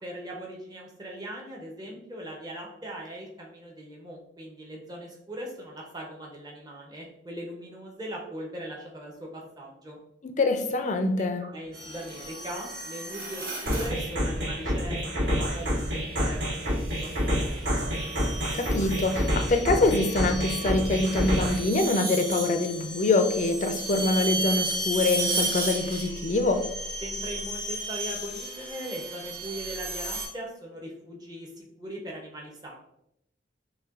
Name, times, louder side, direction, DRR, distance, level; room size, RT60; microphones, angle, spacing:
voice 1, 0.0-10.0 11.4-15.0 15.3-17.1 27.0-32.8, equal, 20° right, -1 dB, 0.6 m, -40 dB
voice 2, 10.4-11.5 18.5-26.6, left 2 dB, 40° left, 6 dB, 0.3 m, -25 dB
sound 1, 11.7-14.1 15.5-15.9 16.7-30.3, right 2 dB, 50° right, 0.9 m, -34 dB
sound 2, 13.7-21.7, equal, 90° right, 1.2 m, -28 dB
5.4 x 2.2 x 2.4 m, 0.78 s
head